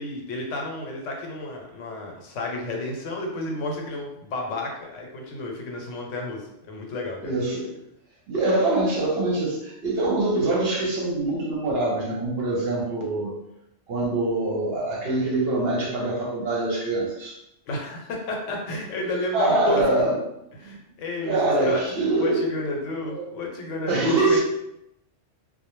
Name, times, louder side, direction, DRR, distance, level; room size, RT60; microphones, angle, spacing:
voice 1, 0.0-7.3 17.7-19.8 20.6-21.8 22.2-24.4, left 2 dB, 75° left, 0 dB, 1.0 m, -31 dB
voice 2, 7.2-7.7 8.3-13.3 13.9-17.4 19.3-20.2 20.7-20.8 21.2-22.4 23.0-23.3 23.8-24.4, right 2 dB, 60° right, -2 dB, 0.8 m, -24 dB
2.3 x 2.1 x 3.0 m, 0.83 s
omnidirectional pair, 1.3 m